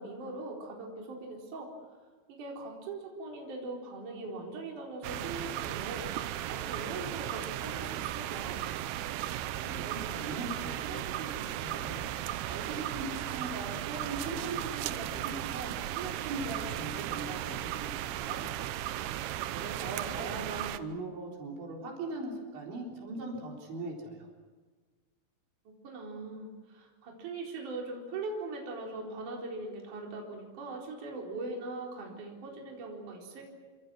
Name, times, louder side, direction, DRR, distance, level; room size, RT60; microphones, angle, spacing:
voice 1, 0.0-1.7 2.3-8.6 19.9-20.3 25.8-33.5, right 2 dB, 40° right, -1 dB, 5.4 m, -41 dB
sound 1, 5.0-20.8, right 13 dB, 85° right, 2.2 m, -36 dB
voice 2, 9.3-19.0 19.3-24.3, right 2 dB, 65° right, -1 dB, 6.2 m, -40 dB
28.5 x 26.0 x 6.3 m, 1.4 s
omnidirectional pair, 5.7 m